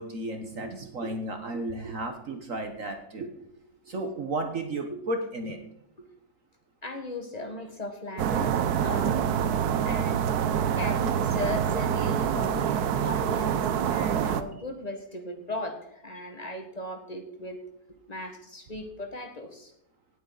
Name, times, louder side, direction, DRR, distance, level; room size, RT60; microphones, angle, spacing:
voice 1, 0.0-3.4 3.9-5.6, right 2 dB, 50° right, 5 dB, 1.4 m, -33 dB
voice 2, 6.8-9.2 9.8-10.2 10.7-17.6 18.1-19.7, left 1 dB, 25° left, 5 dB, 1.5 m, -37 dB
sound 1, 8.2-14.4, right 8 dB, 65° right, 1.2 m, -26 dB
18.0 x 8.2 x 4.0 m, 0.77 s
omnidirectional pair, 1.9 m